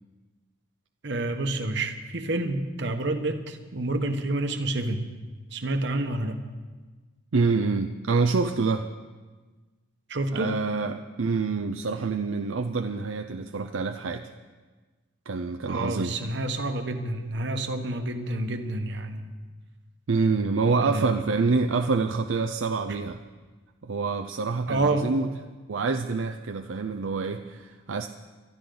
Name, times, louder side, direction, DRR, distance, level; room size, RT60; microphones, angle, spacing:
voice 1, 1.0-5.1 5.5-6.4 10.1-10.6 15.7-19.2 20.8-21.1 24.7-25.1, right 2 dB, 60° right, 6 dB, 1.2 m, -28 dB
voice 2, 7.3-8.9 10.3-14.3 15.3-16.2 20.1-23.2 23.8-25.3 25.7-28.1, right 4 dB, 80° right, 6 dB, 0.6 m, -26 dB
24.0 x 12.0 x 3.9 m, 1.3 s
head